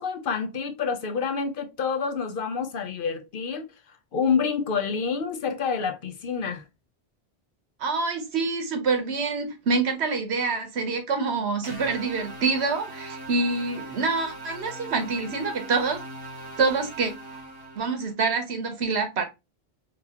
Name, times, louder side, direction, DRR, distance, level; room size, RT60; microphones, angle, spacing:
voice 1, 0.0-3.7 4.1-6.6, left 6 dB, 60° left, 0.8 m, -28 dB
voice 2, 7.8-16.0 16.6-17.1 17.7-19.2, right 4 dB, 90° right, 1.2 m, -26 dB
sound 1, 11.6-18.1, right 2 dB, 25° right, 0.9 m, -40 dB
3.7 x 3.0 x 2.8 m
omnidirectional pair, 1.1 m